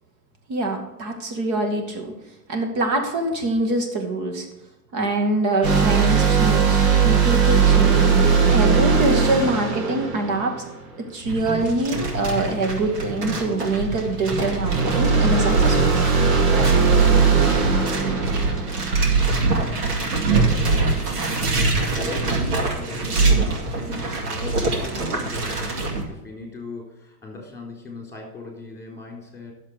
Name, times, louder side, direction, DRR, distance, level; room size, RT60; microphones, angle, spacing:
voice 1, 0.5-2.1 2.5-4.5 4.9-8.1 8.5-10.5 11.1-16.3, right 2 dB, 40° right, 4 dB, 2.4 m, -24 dB
sound 1, 5.6-11.1 14.6-19.4, right 5 dB, 60° right, 2.3 m, -19 dB
sound 2, 11.2-26.0, right 3 dB, 90° right, 2.3 m, -24 dB
voice 2, 18.9-19.9 20.2-29.5, left 3 dB, 5° left, 0 dB, 3.8 m, -39 dB
11.0 x 7.4 x 4.9 m, 0.97 s
hypercardioid pair, 120°, 46 cm